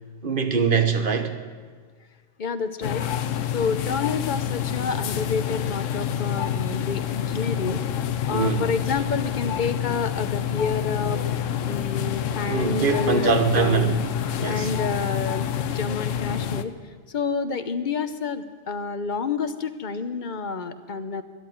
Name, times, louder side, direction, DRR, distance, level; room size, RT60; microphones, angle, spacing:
voice 1, 0.2-1.3 8.3-8.7 12.5-14.0 14.4-14.7, right 5 dB, 45° right, 1.3 m, -22 dB
voice 2, 2.4-3.1 3.5-7.8 8.3-11.2 11.6-14.0 14.5-16.7 17.1-21.2, left 5 dB, 45° left, 0.8 m, -29 dB
sound 1, 2.8-16.6, left 9 dB, 75° left, 1.1 m, -27 dB
13.0 x 11.0 x 9.1 m
omnidirectional pair, 1.3 m